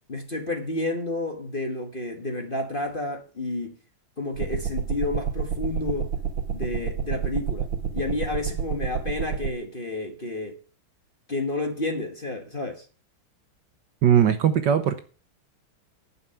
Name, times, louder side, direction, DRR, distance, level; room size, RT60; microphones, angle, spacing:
voice 1, 0.1-3.7 4.2-6.1 6.5-10.6 11.3-12.8, left 2 dB, 30° left, 1.2 m, -30 dB
sound 1, 4.4-9.5, right 7 dB, 80° right, 1.9 m, -29 dB
voice 2, 14.0-15.0, right 9 dB, 65° right, 1.3 m, -19 dB
11.5 x 5.7 x 7.7 m
omnidirectional pair, 2.4 m